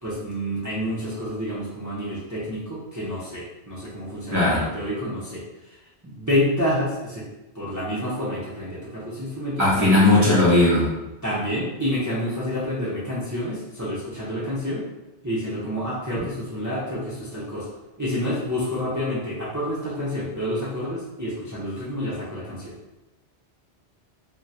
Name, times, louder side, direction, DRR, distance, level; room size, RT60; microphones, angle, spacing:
voice 1, 0.0-5.4 6.0-7.3 7.5-10.4 11.2-14.8 15.2-17.7 18.0-22.7, equal, 20° right, -9 dB, 0.7 m, -28 dB
voice 2, 4.3-4.7 9.6-10.9, left 2 dB, 15° left, -8 dB, 0.7 m, -17 dB
3.6 x 2.2 x 2.8 m, 1.0 s
omnidirectional pair, 1.1 m